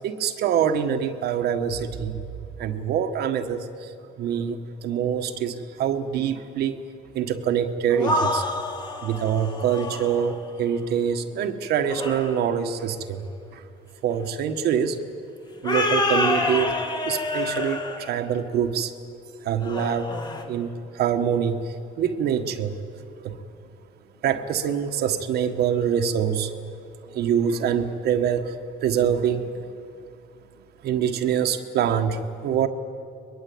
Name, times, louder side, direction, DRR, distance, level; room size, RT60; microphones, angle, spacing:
voice 1, 0.0-2.2 2.6-3.6 4.2-6.8 7.1-8.4 9.0-13.2 14.0-15.0 15.6-16.7 17.0-18.9 19.4-20.1 20.5-20.7 20.9-21.6 22.0-22.8 23.2-23.4 24.2-26.5 27.1-28.5 28.8-29.5 30.8-32.7, right 8 dB, 70° right, 7 dB, 1.5 m, -25 dB
sound 1, 7.9-10.4 11.8-12.5 15.6-18.2 19.6-20.4, left 2 dB, 25° left, 2.7 m, -27 dB
22.5 x 21.5 x 8.7 m, 2.6 s
cardioid pair, 110°, 17 cm